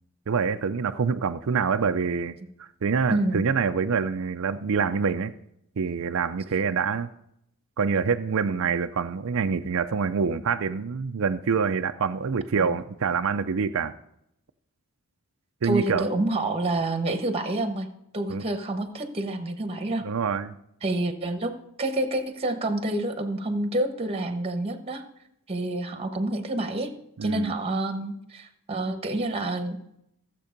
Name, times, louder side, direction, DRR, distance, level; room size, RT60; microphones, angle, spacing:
voice 1, 0.3-5.3 5.8-7.1 7.8-13.9 15.6-16.1 18.3-18.5 20.0-20.6 27.2-27.5, right 5 dB, 60° right, 8 dB, 0.5 m, -26 dB
voice 2, 3.1-3.4 12.5-12.7 15.6-17.9 18.1-20.0 20.8-25.0 25.5-26.9 27.2-29.8, right 1 dB, 25° right, 7 dB, 1.2 m, -28 dB
15.0 x 7.6 x 5.2 m, 0.76 s
head